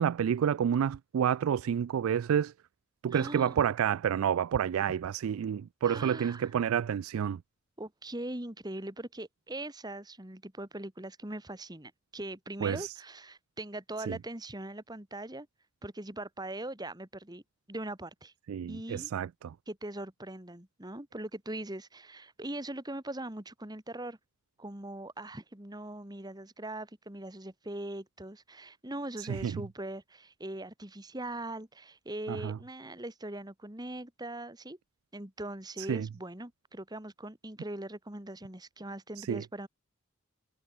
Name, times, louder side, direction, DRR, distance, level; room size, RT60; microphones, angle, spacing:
voice 1, 0.0-2.5 3.0-7.4 12.6-12.9 14.1-14.2 18.5-19.5 29.3-29.6 32.3-32.6 35.8-36.1 39.2-39.4, right 8 dB, 80° right, 0.3 m, -29 dB
voice 2, 3.1-3.5 5.8-6.5 7.8-15.5 15.8-17.4 17.7-18.3 18.7-19.1 19.7-24.2 24.6-34.8 35.1-39.7, right 1 dB, 20° right, 2.0 m, -41 dB
head